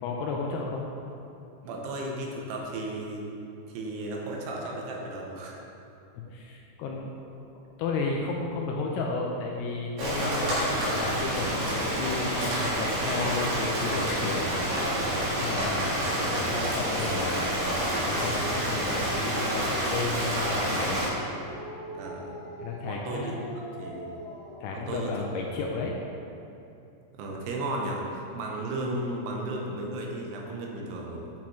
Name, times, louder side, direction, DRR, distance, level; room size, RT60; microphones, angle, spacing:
voice 1, 0.0-0.9 6.2-7.3 7.8-14.5 14.8-16.0 16.4-17.6 18.1-21.0 22.6-23.4 24.6-26.0, left 4 dB, 85° left, 0 dB, 2.4 m, -33 dB
voice 2, 1.6-3.3 3.7-5.6 11.2-11.3 15.6-16.0 18.6-18.9 21.9-22.4 22.8-23.3 23.7-24.2 24.7-25.1 25.7-25.8 27.1-31.3, right 2 dB, 80° right, -1 dB, 2.8 m, -35 dB
Rain, 10.0-21.1, equal, 60° right, 2.9 m, -28 dB
Dog, 14.5-17.3 17.7-20.8 21.3-24.8, left 1 dB, 60° left, 2.4 m, -42 dB
8.7 x 5.9 x 3.1 m, 2.7 s
omnidirectional pair, 5.0 m